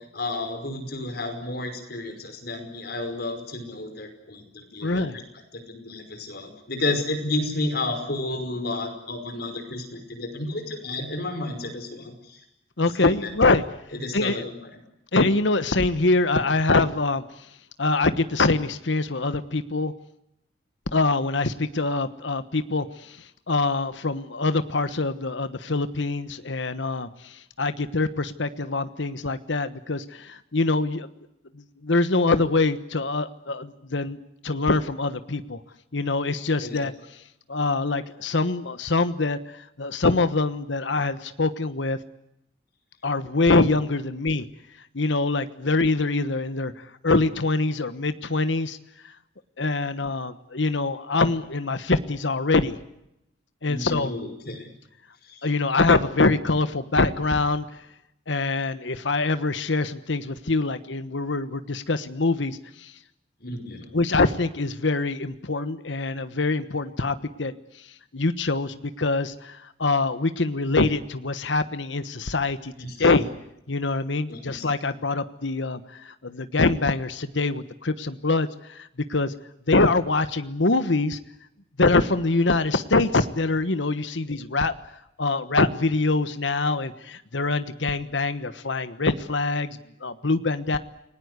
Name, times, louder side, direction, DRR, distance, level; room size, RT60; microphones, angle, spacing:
voice 1, 0.0-5.1 5.7-12.4 13.0-13.3 13.9-14.5 36.6-36.8 53.7-54.7 55.3-55.5 63.4-63.9 72.8-73.2 74.3-74.7, left 2 dB, 55° left, 6 dB, 5.4 m, -32 dB
voice 2, 4.8-5.2 12.8-13.6 14.1-14.5 15.1-17.2 17.8-19.9 20.9-23.2 23.5-27.1 27.6-31.1 31.8-34.2 34.4-35.6 35.9-36.9 37.5-39.4 39.8-42.0 43.0-44.4 44.9-46.7 47.0-48.8 49.6-52.8 53.6-54.1 55.4-57.7 58.3-62.9 63.9-67.5 68.1-72.7 73.0-73.3 73.7-79.3 79.7-81.2 81.8-84.7 85.2-90.8, left 3 dB, 70° left, 12 dB, 1.3 m, -24 dB
29.5 x 19.5 x 8.1 m, 0.82 s
head